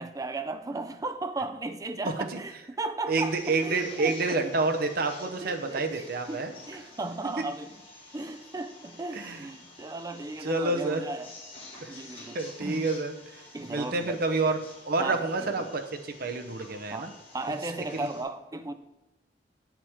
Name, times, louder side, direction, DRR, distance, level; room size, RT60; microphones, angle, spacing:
voice 1, 0.0-4.4 5.2-7.8 8.1-11.3 11.9-12.9 13.5-14.2 15.0-15.7 16.9-18.7, right 2 dB, 20° right, 0.4 m, -36 dB
voice 2, 3.1-6.5 9.1-9.4 10.4-11.0 11.8-11.9 12.3-13.4 13.7-14.6 14.8-17.1 17.9-18.1, right 3 dB, 55° right, 0.7 m, -28 dB
sound 1, 3.2-18.2, left 2 dB, 30° left, 1.9 m, -50 dB
8.0 x 5.8 x 3.5 m
head